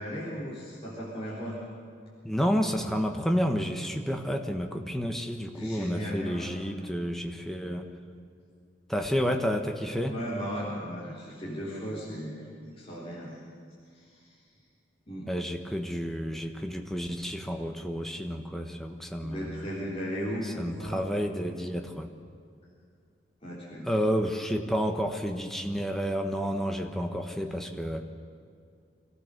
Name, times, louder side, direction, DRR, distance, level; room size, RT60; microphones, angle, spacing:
voice 1, 0.0-1.6 5.5-6.5 10.0-13.4 13.9-14.2 15.1-15.3 19.2-21.1 23.4-24.0, equal, 35° left, -8 dB, 3.9 m, -36 dB
voice 2, 2.2-7.9 8.9-10.1 15.3-19.7 20.4-22.1 23.8-28.0, equal, ahead, 3 dB, 1.3 m, -30 dB
25.5 x 15.0 x 6.8 m, 2.3 s
head